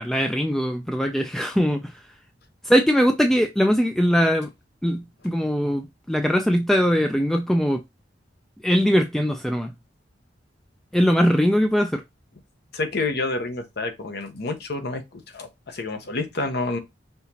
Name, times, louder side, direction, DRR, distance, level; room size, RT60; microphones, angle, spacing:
voice 1, 0.0-2.1 2.6-4.5 4.8-7.8 8.6-9.7 10.9-12.0, equal, ahead, 0.3 m, -21 dB
voice 2, 12.7-16.8, left 3 dB, 60° left, 0.8 m, -29 dB
5.5 x 2.9 x 2.8 m
head